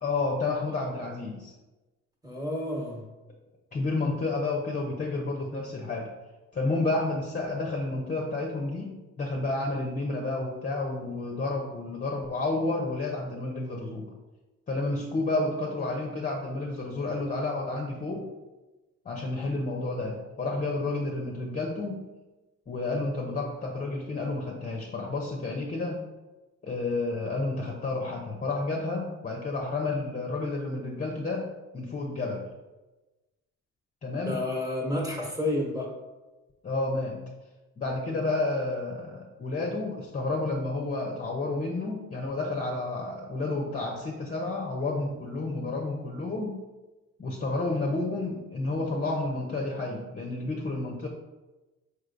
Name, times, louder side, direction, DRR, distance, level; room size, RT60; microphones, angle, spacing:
voice 1, 0.0-1.5 3.7-6.1 6.5-14.1 14.7-18.3 19.0-22.0 22.7-26.0 26.6-32.5 34.0-34.4 36.6-37.2 37.8-46.6 47.2-51.1, left 2 dB, 30° left, 1 dB, 0.6 m, -30 dB
voice 2, 2.2-3.1 34.3-35.9, left 1 dB, 10° right, -2 dB, 1.1 m, -30 dB
4.4 x 3.2 x 2.5 m, 1.1 s
cardioid pair, 90°, 30 cm